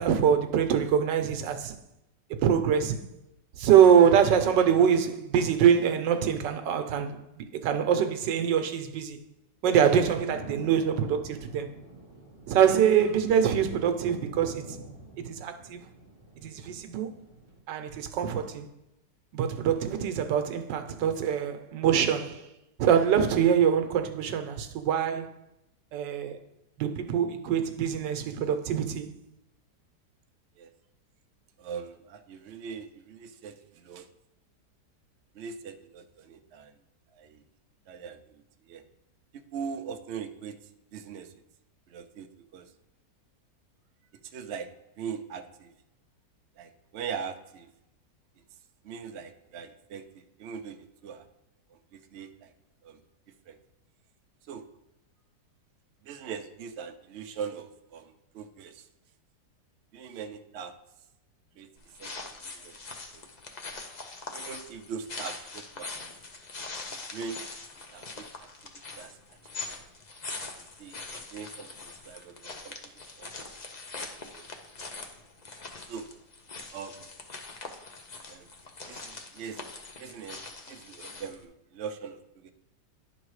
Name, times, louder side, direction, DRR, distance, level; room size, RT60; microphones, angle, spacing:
voice 1, 0.0-1.8 2.4-3.0 3.6-9.2 9.6-11.7 12.5-14.8 15.2-15.8 16.4-17.1 17.7-18.7 19.3-22.4 22.8-25.3 25.9-26.4 26.8-29.1, right 8 dB, 85° right, 1.4 m, -24 dB
sound 1, 10.1-17.6, right 2 dB, 35° right, 1.6 m, -46 dB
voice 2, 31.6-34.1 35.3-36.7 37.1-37.4 37.9-38.8 39.3-40.5 40.9-41.3 41.9-42.7 44.2-44.7 45.0-45.7 46.6-47.7 48.8-51.3 51.7-52.5 52.8-53.0 53.5-53.6 54.4-54.6 56.0-58.9 59.9-60.7 61.6-62.8 63.1-63.2 64.3-66.1 67.1-67.4 67.9-68.5 68.9-69.2 69.7-69.8 70.6-73.3 74.3-74.4 75.9-76.1 76.7-77.0 78.3-78.5 78.9-79.6 79.9-80.4 80.7-82.5, right 6 dB, 65° right, 0.7 m, -41 dB
sound 2, 61.8-81.4, left 3 dB, 55° left, 0.4 m, -42 dB
10.5 x 4.0 x 4.7 m
omnidirectional pair, 1.9 m